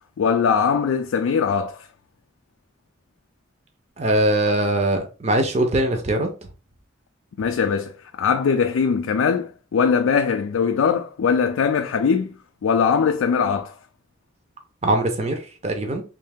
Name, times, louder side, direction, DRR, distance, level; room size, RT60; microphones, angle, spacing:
voice 1, 0.2-1.9 7.4-12.3 12.6-13.7, left 6 dB, 85° left, 0.3 m, -21 dB
voice 2, 4.0-6.3 14.8-16.0, right 1 dB, 35° right, 0.6 m, -21 dB
3.2 x 2.7 x 3.4 m
head